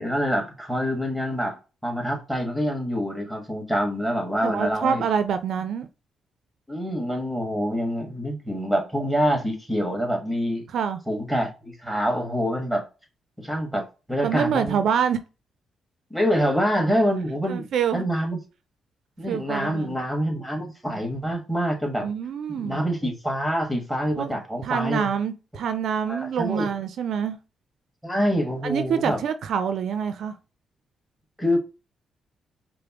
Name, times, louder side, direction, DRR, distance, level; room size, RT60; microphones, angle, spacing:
voice 1, 0.0-5.0 6.7-10.7 11.1-12.8 13.4-13.8 14.1-14.8 16.1-17.7 17.9-18.4 19.2-22.1 22.5-25.1 26.1-26.7 28.0-29.2 31.4-31.6, equal, ahead, 1.5 m, -26 dB
voice 2, 4.4-5.9 10.7-11.0 14.2-15.2 17.5-18.1 19.3-20.0 22.0-22.8 24.2-24.3 24.6-27.4 28.6-30.3, right 7 dB, 70° right, 0.4 m, -26 dB
5.0 x 2.0 x 2.9 m
cardioid pair, 80°, 0 cm